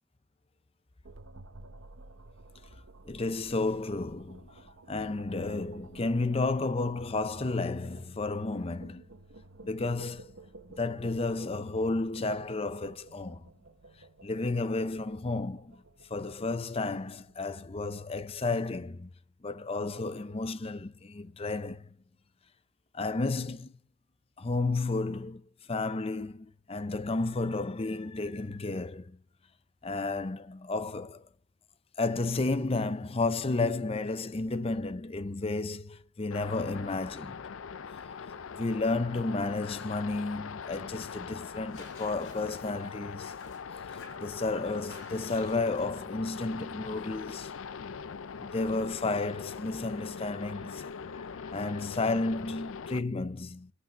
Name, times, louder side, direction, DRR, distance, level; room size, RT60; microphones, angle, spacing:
sound 1, 1.0-18.3, right 2 dB, 75° right, 1.1 m, -54 dB
voice 1, 3.0-9.0 9.6-10.3 10.7-13.5 14.2-15.8 16.1-19.1 19.4-21.9 22.9-23.8 24.4-25.4 25.7-29.2 29.8-31.2 32.0-37.5 38.5-43.3 44.2-47.5 48.4-53.7, left 3 dB, 30° left, 0.6 m, -32 dB
sound 2, 36.3-53.0, left 6 dB, 85° left, 0.5 m, -42 dB
sound 3, 38.2-50.5, left 3 dB, 70° left, 5.1 m, -56 dB
9.8 x 8.8 x 6.6 m
head